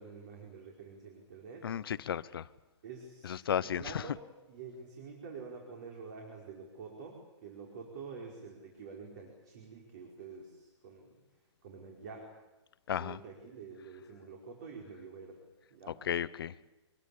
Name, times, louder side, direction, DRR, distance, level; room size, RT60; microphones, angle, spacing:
voice 1, 0.0-1.6 2.8-4.2 4.5-7.2 7.4-11.1 11.6-12.2 13.0-15.4 15.7-16.0, right 5 dB, 35° right, 0 dB, 4.9 m, -47 dB
voice 2, 1.6-2.5 3.2-4.1 12.9-13.2 16.0-16.5, left 9 dB, 50° left, 16 dB, 0.8 m, -34 dB
24.5 x 22.0 x 8.6 m, 1.1 s
hypercardioid pair, 180°, 15 cm